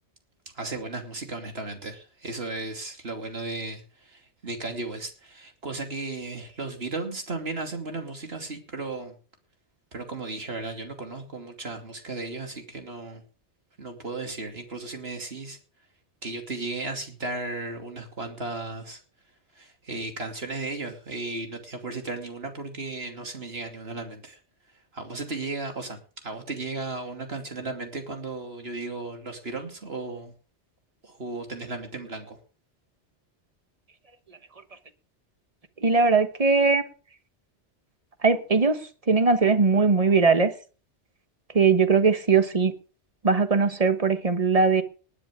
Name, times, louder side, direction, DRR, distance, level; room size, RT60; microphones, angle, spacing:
voice 1, 0.5-9.2 9.9-13.2 13.8-15.6 16.2-19.0 19.5-24.4 24.9-30.3 31.0-32.4, right 3 dB, 60° right, 3.0 m, -35 dB
voice 2, 35.8-36.8 38.2-40.5 41.5-42.7 43.2-44.8, right 4 dB, 35° right, 1.3 m, -20 dB
19.5 x 9.9 x 3.7 m
omnidirectional pair, 1.1 m